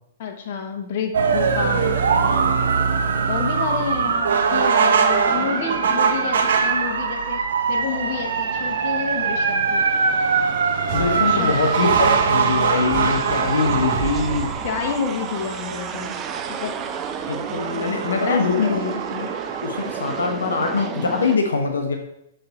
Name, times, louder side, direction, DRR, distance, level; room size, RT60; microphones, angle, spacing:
voice 1, 0.2-2.6 3.3-7.4 7.7-9.8 11.1-11.6 14.6-16.2 16.5-16.7 17.6-17.7 18.2-18.9, left 6 dB, 55° left, 3 dB, 1.0 m, -29 dB
sound 1, 1.1-20.3, right 5 dB, 75° right, 0.7 m, -22 dB
sound 2, 5.3-7.1 7.6-21.4, right 7 dB, 25° right, 0.4 m, -34 dB
voice 2, 10.9-14.6 17.3-19.3 19.6-22.0, left 4 dB, 85° left, 3 dB, 0.9 m, -23 dB
sound 3, 10.9-15.2, right 5 dB, 40° right, 1.6 m, -31 dB
6.7 x 3.4 x 4.1 m, 0.81 s
hypercardioid pair, 130°, 0 cm